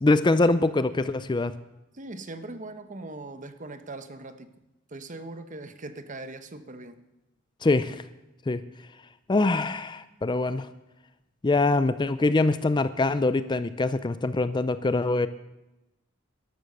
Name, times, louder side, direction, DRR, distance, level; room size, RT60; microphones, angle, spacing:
voice 1, 0.0-1.5 7.6-8.0 8.5-8.6 9.3-10.7 11.4-15.3, left 2 dB, 20° left, 14 dB, 0.4 m, -24 dB
voice 2, 1.9-4.5 4.9-7.0, right 2 dB, 40° right, 10 dB, 0.9 m, -40 dB
13.5 x 12.0 x 6.6 m, 0.99 s
head